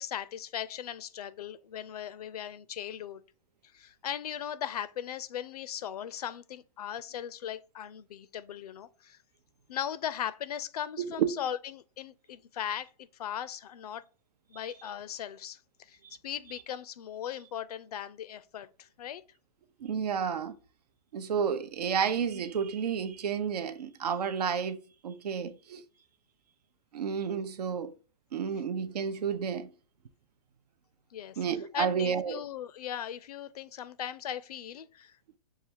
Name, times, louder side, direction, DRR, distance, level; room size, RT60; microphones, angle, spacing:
voice 1, 0.0-3.2 3.7-9.2 9.7-12.9 13.2-14.0 14.5-15.6 15.9-16.0 16.2-19.2 31.1-31.4 31.7-35.1, left 10 dB, 80° left, 0.5 m, -38 dB
voice 2, 11.0-11.3 16.0-16.2 19.8-20.6 21.1-25.8 26.9-27.9 28.3-29.7 31.4-32.4, right 7 dB, 90° right, 0.6 m, -31 dB
6.5 x 2.4 x 2.7 m
hypercardioid pair, 140°, 20 cm